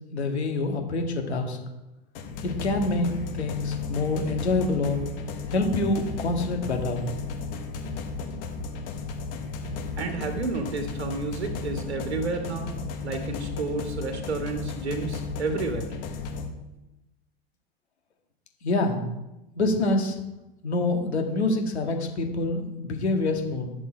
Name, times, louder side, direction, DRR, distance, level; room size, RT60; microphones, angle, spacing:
voice 1, 0.1-1.6 2.4-5.0 5.5-7.1 18.6-19.0 19.5-20.2 20.6-23.7, left 2 dB, 85° left, 3 dB, 1.9 m, -26 dB
sound 1, 2.1-16.5, left 4 dB, 60° left, 1.6 m, -34 dB
voice 2, 10.0-15.9, right 3 dB, 85° right, 5 dB, 1.7 m, -31 dB
10.0 x 7.0 x 4.4 m, 0.98 s
hypercardioid pair, 100°, 32 cm